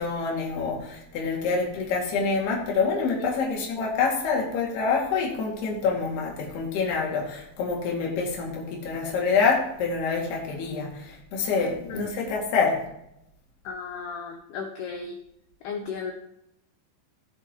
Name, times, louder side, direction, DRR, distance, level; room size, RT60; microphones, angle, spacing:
voice 1, 0.0-12.8, left 5 dB, 55° left, -2 dB, 4.0 m, -26 dB
voice 2, 13.6-15.2 15.6-16.1, left 5 dB, 85° left, 4 dB, 2.3 m, -35 dB
18.5 x 6.9 x 3.0 m, 0.81 s
omnidirectional pair, 5.8 m